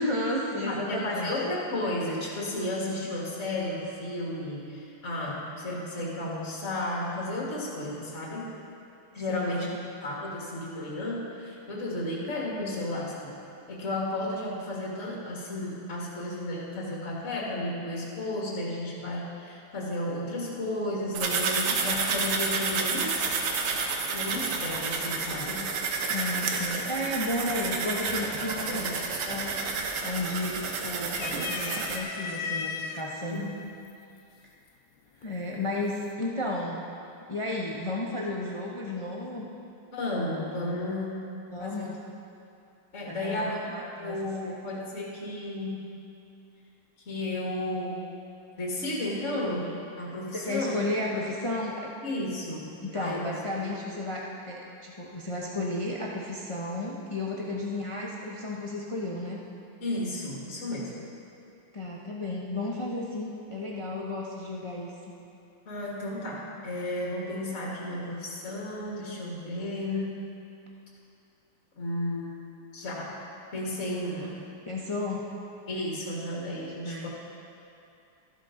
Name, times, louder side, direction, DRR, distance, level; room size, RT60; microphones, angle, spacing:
voice 1, 0.0-1.3 9.3-9.9 26.1-33.4 35.2-36.8 37.3-39.5 41.5-41.9 43.1-44.2 44.4-44.6 50.3-51.9 52.8-59.4 61.7-65.1 74.7-75.2 76.8-77.1, left 1 dB, 55° left, -3 dB, 0.3 m, -33 dB
voice 2, 0.6-8.5 9.1-9.7 10.0-13.3 13.7-23.3 24.1-25.8 28.4-29.0 33.3-33.6 39.9-42.0 42.9-43.7 44.0-46.0 47.1-48.0 48.6-50.8 52.0-53.7 59.8-61.0 65.7-70.3 71.8-72.4 72.7-73.2 73.5-74.4 75.7-77.1, left 1 dB, 35° left, -4 dB, 2.1 m, -33 dB
sound 1, 21.2-32.0, right 4 dB, 90° right, 1.9 m, -30 dB
sound 2, 29.2-29.6 30.0-30.7 31.1-33.0 33.9-34.0 35.2-35.7, left 6 dB, 80° left, 1.6 m, -35 dB
13.5 x 12.0 x 3.8 m, 2.7 s
omnidirectional pair, 2.3 m